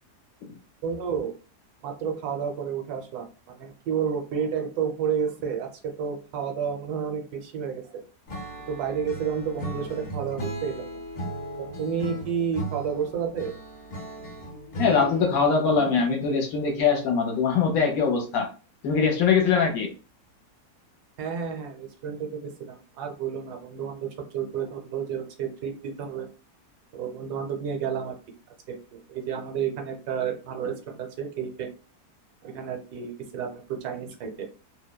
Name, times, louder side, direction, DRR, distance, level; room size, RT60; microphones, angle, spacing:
voice 1, 0.8-1.3 1.8-5.7 6.0-8.0 8.7-11.0 11.6-13.5 21.2-26.3 26.9-28.2 28.7-31.7 32.4-34.5, right 7 dB, 80° right, 4 dB, 1.1 m, -31 dB
Acoustic guitar / Strum, 8.3-15.5, right 1 dB, 50° left, 0.7 m, -36 dB
voice 2, 14.8-18.5 18.8-19.9, left 5 dB, 70° left, 2 dB, 1.0 m, -22 dB
2.7 x 2.0 x 2.2 m, 0.35 s
omnidirectional pair, 1.7 m